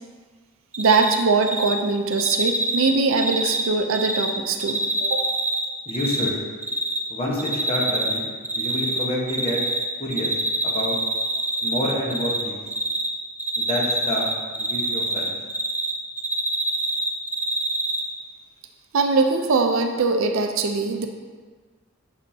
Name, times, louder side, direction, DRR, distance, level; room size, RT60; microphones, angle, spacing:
Cricket, 0.7-1.1 1.4-1.7 2.1-4.3 4.6-6.3 6.6-7.0 7.4-8.2 8.4-9.8 10.1-12.4 12.7-13.1 13.4-15.9 16.2-18.0, right 2 dB, 10° right, 0.3 m, -25 dB
voice 1, 0.8-5.2 18.9-21.1, right 4 dB, 70° right, 5 dB, 0.5 m, -22 dB
voice 2, 5.9-6.3 7.1-8.3 8.5-9.6 10.0-10.3 10.6-11.0 11.6-12.6 13.6-14.3 14.6-15.4, left 1 dB, 25° left, -3 dB, 1.0 m, -28 dB
7.1 x 5.3 x 2.7 m, 1.5 s
head